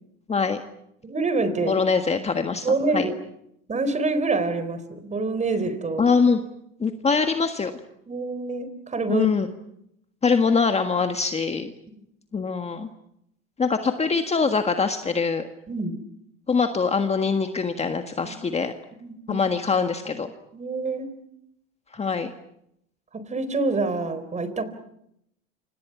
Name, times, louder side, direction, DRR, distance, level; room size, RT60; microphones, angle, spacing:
voice 1, 1.0-1.8 2.6-3.2 3.7-6.1 8.1-9.3 15.7-16.0 18.2-18.4 19.0-19.4 20.5-21.1 23.1-24.6, right 3 dB, 20° right, 12 dB, 4.0 m, -26 dB
voice 2, 1.7-2.7 2.9-3.1 6.0-6.4 6.8-7.7 9.1-9.5 10.2-11.7 12.3-12.9 13.6-15.4 16.5-18.7 19.3-20.3 21.9-22.3, left 5 dB, 15° left, 6 dB, 1.6 m, -23 dB
29.0 x 26.5 x 6.0 m, 0.77 s
hypercardioid pair, 105°, 36 cm